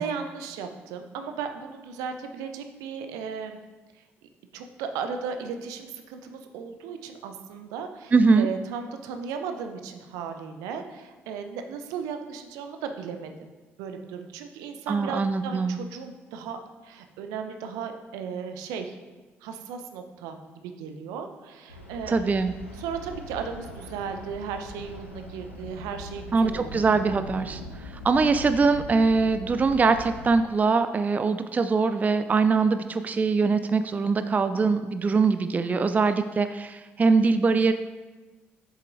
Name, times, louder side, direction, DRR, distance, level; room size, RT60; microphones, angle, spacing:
voice 1, 0.0-3.6 4.5-13.5 13.8-19.0 19.4-22.4 22.7-27.1, right 6 dB, 65° right, 6 dB, 0.7 m, -36 dB
voice 2, 8.1-8.5 14.9-15.8 22.1-22.5 26.3-37.7, right 4 dB, 25° right, 10 dB, 0.4 m, -22 dB
sound 1, 21.7-30.3, equal, 90° left, 0.6 m, -41 dB
7.7 x 7.4 x 2.6 m, 1.2 s
figure-of-eight pair, 45°, 7 cm